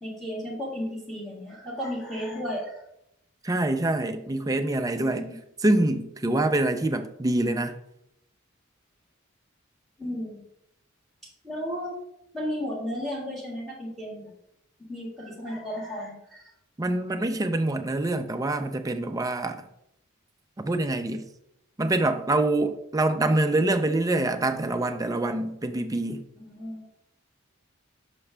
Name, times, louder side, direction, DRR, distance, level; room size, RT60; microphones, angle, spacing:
voice 1, 0.0-2.8 5.0-5.4 10.0-10.4 11.4-11.9 12.3-14.3 14.9-16.4 26.3-26.8, equal, ahead, 1.6 m, -34 dB
voice 2, 3.4-5.3 5.6-7.7 16.8-19.7 20.6-21.2 21.8-26.2, right 2 dB, 15° right, 0.4 m, -25 dB
5.8 x 5.4 x 3.3 m
head